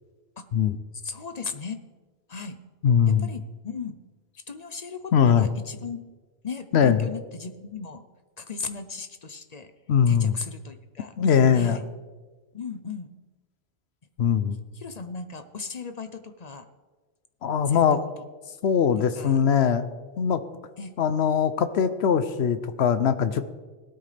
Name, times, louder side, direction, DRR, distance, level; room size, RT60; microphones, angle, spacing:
voice 1, 1.0-1.8 2.3-2.6 3.2-4.0 4.5-6.0 6.4-8.0 8.4-9.7 10.1-11.1 11.5-11.9 12.5-13.1 14.7-16.7 17.7-18.0 19.1-19.4 20.8-21.0, left 5 dB, 45° left, 9 dB, 0.7 m, -37 dB
voice 2, 2.8-3.3 5.1-5.5 6.7-7.0 9.9-10.3 11.2-11.8 14.2-14.6 17.4-18.0 18.6-19.9 20.2-20.4 21.0-23.4, left 7 dB, 70° left, 12 dB, 0.9 m, -21 dB
18.0 x 12.5 x 3.3 m, 1.3 s
omnidirectional pair, 1.1 m